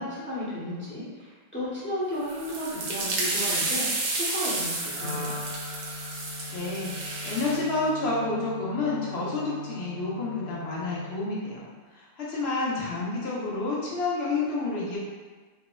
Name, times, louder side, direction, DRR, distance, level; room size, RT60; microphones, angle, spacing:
voice 1, 0.0-5.4, left 1 dB, 15° left, -10 dB, 0.6 m, -34 dB
sound 1, 2.2-7.6, right 2 dB, 55° right, 0.5 m, -31 dB
Wind instrument woodwind instrument, 5.0-11.3, left 3 dB, 65° left, 0.7 m, -40 dB
voice 2, 6.5-6.9 7.2-11.7 11.9-15.0, left 3 dB, 85° left, -6 dB, 1.0 m, -29 dB
3.3 x 2.1 x 2.2 m, 1.4 s
omnidirectional pair, 1.0 m